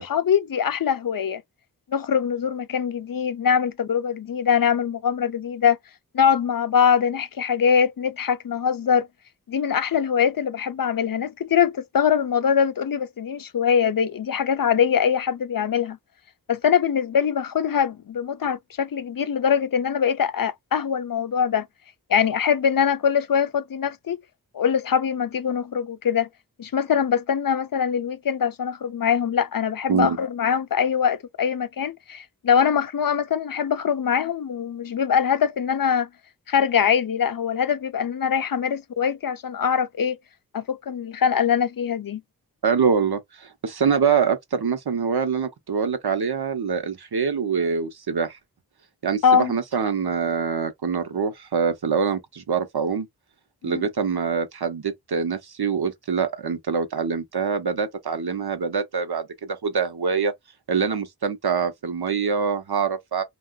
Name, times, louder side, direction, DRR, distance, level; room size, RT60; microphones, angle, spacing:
voice 1, 0.1-1.4 1.9-5.8 6.1-9.1 9.5-16.0 16.5-21.7 22.1-24.2 24.5-26.3 26.6-36.1 36.5-40.2 40.5-42.2 49.2-49.5 53.6-53.9, left 7 dB, 65° left, 0.5 m, -23 dB
voice 2, 42.6-48.3 49.0-53.1 53.6-60.3 60.7-63.2, right 6 dB, 85° right, 0.7 m, -24 dB
3.6 x 2.3 x 2.2 m
wide cardioid pair, 45°, 37 cm